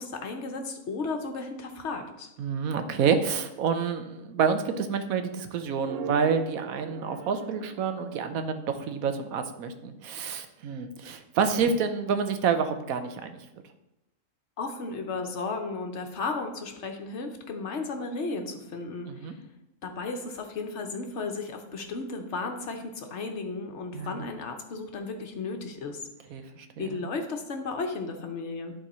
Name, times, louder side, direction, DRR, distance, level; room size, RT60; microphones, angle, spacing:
voice 1, 0.0-2.3 14.6-19.4 19.8-26.0 26.8-28.7, left 3 dB, 60° left, 4 dB, 1.1 m, -34 dB
voice 2, 2.4-13.4 19.1-19.3 23.9-24.2 26.3-27.0, right 6 dB, 85° right, 8 dB, 1.2 m, -28 dB
sound 1, 5.8-9.1, right 7 dB, 65° right, 0.6 m, -41 dB
11.0 x 3.7 x 4.2 m, 0.90 s
omnidirectional pair, 1.4 m